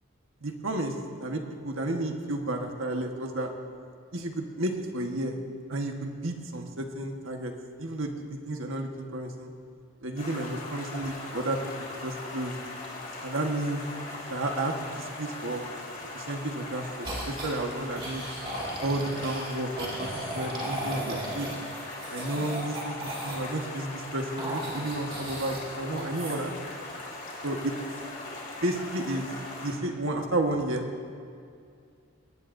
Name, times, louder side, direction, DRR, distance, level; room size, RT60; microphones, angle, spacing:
voice 1, 0.4-3.5 4.1-5.4 5.7-7.5 7.8-9.5 10.0-11.6 12.0-12.5 13.2-13.8 14.3-15.6 16.1-18.2 18.8-21.5 22.1-26.5 27.4-27.7 28.6-29.3 29.6-30.8, right 1 dB, 75° right, 3 dB, 1.4 m, -32 dB
Stream, 10.2-29.7, left 2 dB, 40° left, 2.8 m, -40 dB
sound 1, 17.0-17.6 18.0-23.6 24.4-25.7 25.9-26.4, right 1 dB, 25° right, 2.2 m, -36 dB
21.0 x 17.0 x 2.7 m, 2.3 s
head